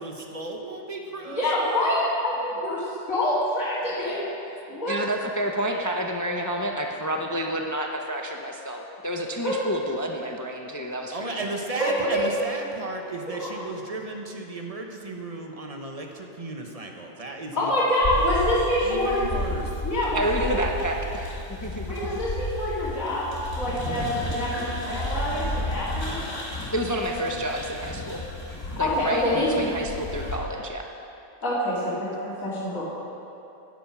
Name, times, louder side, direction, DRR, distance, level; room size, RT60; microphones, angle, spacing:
voice 1, 0.0-1.4 11.1-17.7 18.8-19.8, right 2 dB, 30° right, 2 dB, 0.9 m, -34 dB
voice 2, 1.3-4.2 4.7-5.0 9.4-9.6 11.8-12.2 13.3-13.6 17.6-19.2 19.8-20.8 21.9-23.3 23.5-26.2 27.0-27.1 28.6-29.7 31.4-32.8, left 1 dB, 90° left, -13 dB, 2.9 m, -26 dB
voice 3, 4.9-11.5 20.1-22.0 26.7-28.2 28.8-30.9, equal, 25° left, 2 dB, 0.4 m, -29 dB
sound 1, 18.0-30.4, left 1 dB, 50° left, 3.6 m, -32 dB
10.5 x 10.0 x 5.9 m, 2.9 s
omnidirectional pair, 1.4 m